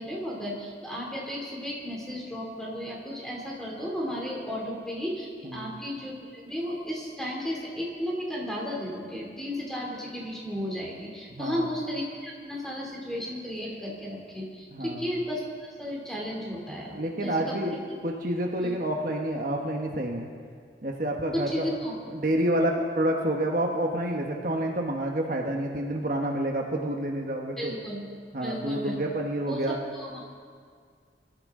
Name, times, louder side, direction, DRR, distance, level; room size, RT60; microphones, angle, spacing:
voice 1, 0.0-15.4 15.8-18.0 18.6-18.7 21.3-22.0 27.6-28.1 28.4-29.0 29.5-30.2, equal, 5° left, -3 dB, 2.8 m, -34 dB
voice 2, 11.4-11.7 14.7-15.1 16.9-17.8 18.0-20.3 20.8-21.7 22.1-27.7 28.3-29.8, right 1 dB, 50° right, 1 dB, 1.2 m, -28 dB
23.5 x 13.0 x 3.8 m, 2.1 s
head